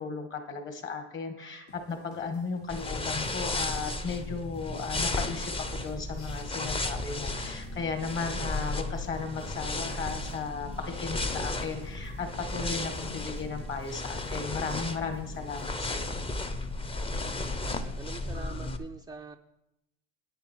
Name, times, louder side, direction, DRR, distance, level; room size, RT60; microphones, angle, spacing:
voice 1, 0.0-16.2, left 5 dB, 35° left, 6 dB, 2.0 m, -35 dB
sound 1, 1.7-16.2, left 4 dB, 60° left, 2.1 m, -55 dB
sound 2, 2.7-18.8, left 2 dB, 15° left, 0.8 m, -34 dB
sound 3, 6.1-6.5 8.0-8.1 9.0-9.2 10.1-10.4 11.6-12.0 13.0-13.2 15.2-15.4, left 4 dB, 80° left, 2.8 m, -60 dB
voice 2, 17.6-19.4, right 4 dB, 10° right, 4 dB, 0.4 m, -44 dB
10.0 x 8.9 x 4.7 m, 0.91 s
supercardioid pair, 100°, 34 cm